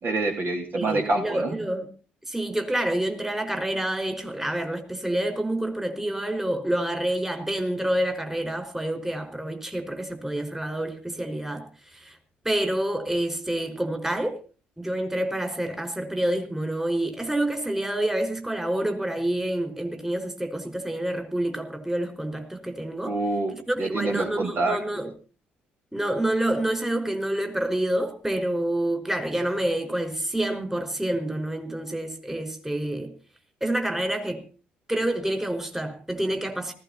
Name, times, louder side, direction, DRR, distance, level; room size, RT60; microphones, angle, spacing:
voice 1, 0.0-1.5 23.1-23.5 23.8-24.8, right 2 dB, 45° right, 2 dB, 3.7 m, -26 dB
voice 2, 0.8-1.9 2.3-11.6 11.9-12.2 12.5-14.4 14.8-23.2 23.5-25.1 25.9-33.1 33.6-34.4 34.9-36.7, right 1 dB, 10° right, 6 dB, 5.1 m, -28 dB
19.0 x 17.0 x 4.3 m, 0.37 s
figure-of-eight pair, 50°, 5 cm